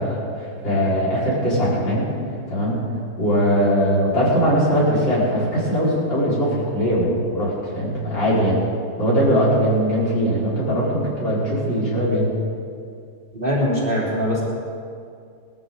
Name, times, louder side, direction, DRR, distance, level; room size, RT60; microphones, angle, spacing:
voice 1, 0.0-2.1 2.5-2.8 3.2-8.6 9.0-12.3, equal, 70° left, -9 dB, 5.8 m, -20 dB
voice 2, 13.3-14.4, equal, 25° right, -6 dB, 3.1 m, -22 dB
20.5 x 13.5 x 4.0 m, 2.3 s
omnidirectional pair, 2.1 m